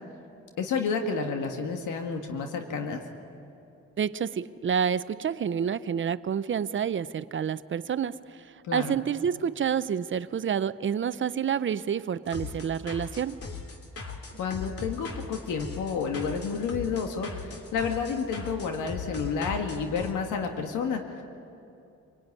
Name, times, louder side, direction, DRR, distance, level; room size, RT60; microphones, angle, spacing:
voice 1, 0.6-3.0 8.6-9.0 14.4-21.2, left 5 dB, 80° left, 4 dB, 1.9 m, -30 dB
voice 2, 4.0-8.1 8.7-13.4, right 7 dB, 40° right, 15 dB, 0.7 m, -28 dB
sound 1, 12.3-20.1, left 4 dB, 50° left, 3.1 m, -39 dB
26.0 x 19.0 x 9.7 m, 2.8 s
cardioid pair, 90°, 30 cm